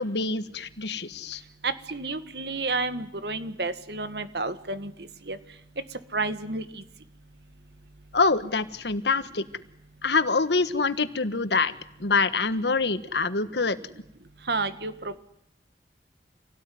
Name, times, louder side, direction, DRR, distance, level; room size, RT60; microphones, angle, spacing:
voice 1, 0.0-1.4 8.1-9.4 10.0-11.7 12.0-13.8, left 4 dB, 80° left, 12 dB, 1.4 m, -25 dB
voice 2, 1.6-4.9 5.3-5.4 6.1-6.6 14.5-14.9, right 3 dB, 75° right, 11 dB, 1.8 m, -30 dB
27.0 x 17.5 x 9.5 m, 0.78 s
head